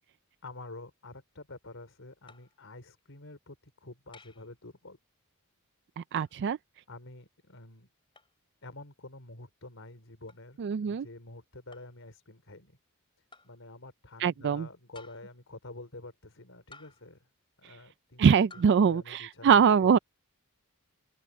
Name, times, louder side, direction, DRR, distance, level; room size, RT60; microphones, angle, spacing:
voice 1, 0.4-3.6 3.8-5.0 6.9-7.9 8.6-12.8 13.4-17.3 17.6-18.3 18.5-20.0, left 2 dB, 60° left, 4.4 m, -48 dB
sound 1, 2.3-2.6 4.1-4.5 6.2-6.4 8.1-8.3 10.3-10.5 11.7-12.0 13.3-13.6 14.9-15.4 16.7-17.2 18.5-18.8, left 3 dB, 25° left, 4.7 m, -55 dB
voice 2, 6.0-6.6 10.6-11.1 14.2-14.7 18.2-20.0, right 7 dB, 50° right, 0.3 m, -23 dB
open air
head